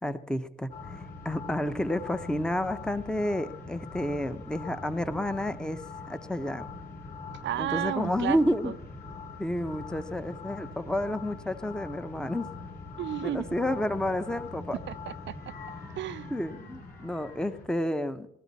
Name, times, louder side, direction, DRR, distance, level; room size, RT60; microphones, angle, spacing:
voice 1, 0.0-1.0 1.2-5.8 6.1-6.7 7.6-8.7 9.4-12.5 13.2-14.8 16.3-18.3, left 1 dB, 5° left, 0.8 m, -30 dB
sound 1, 0.7-17.6, left 3 dB, 55° left, 5.9 m, -43 dB
voice 2, 7.4-8.7 13.0-13.4 14.9-15.5 16.0-16.3, right 12 dB, 70° right, 0.6 m, -33 dB
19.5 x 13.0 x 4.1 m
cardioid pair, 90°, 20 cm